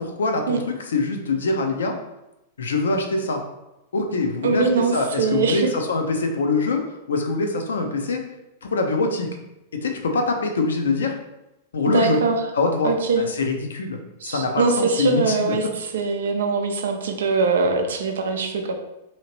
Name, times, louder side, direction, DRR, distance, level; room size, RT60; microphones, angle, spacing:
voice 1, 0.0-2.0 2.6-3.4 3.9-6.8 7.1-8.2 8.6-9.3 9.7-11.1 11.7-12.2 12.5-12.9 13.2-14.0 14.2-15.7, left 3 dB, 65° left, 4 dB, 0.5 m, -24 dB
voice 2, 4.4-5.7 11.9-12.4 12.8-13.2 14.2-18.7, right 4 dB, 65° right, 4 dB, 0.4 m, -22 dB
2.8 x 2.8 x 2.9 m, 0.92 s
figure-of-eight pair, 95°, 0 cm